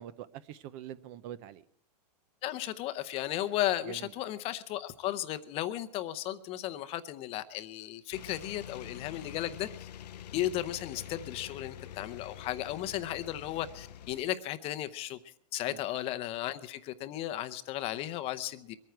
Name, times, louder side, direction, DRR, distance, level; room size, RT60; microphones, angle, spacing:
voice 1, 0.0-1.6 3.9-4.1 15.7-15.8, right 11 dB, 35° right, 17 dB, 0.5 m, -44 dB
voice 2, 2.4-9.9 10.3-15.2 15.5-18.7, left 13 dB, 30° left, 12 dB, 0.7 m, -35 dB
sound 1, 8.1-14.2, left 10 dB, 85° left, 0.6 m, -46 dB
23.0 x 9.3 x 4.6 m, 0.71 s
hypercardioid pair, 150°, 21 cm